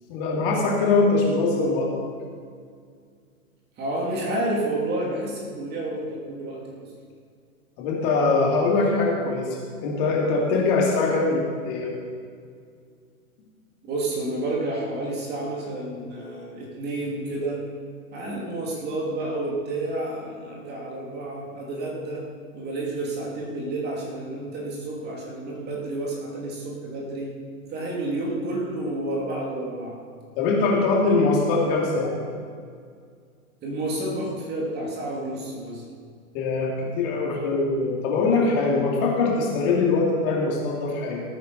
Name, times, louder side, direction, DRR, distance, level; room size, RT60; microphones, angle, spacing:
voice 1, 0.1-1.9 7.8-9.6 9.8-11.9 30.4-32.1 36.3-41.2, left 3 dB, 40° left, -2 dB, 3.0 m, -22 dB
voice 2, 3.8-6.9 13.8-17.6 18.1-22.2 22.5-27.3 27.7-30.0 33.6-35.8, right 2 dB, 25° right, -3 dB, 2.7 m, -30 dB
18.0 x 9.3 x 4.1 m, 2.1 s
hypercardioid pair, 125°, 42 cm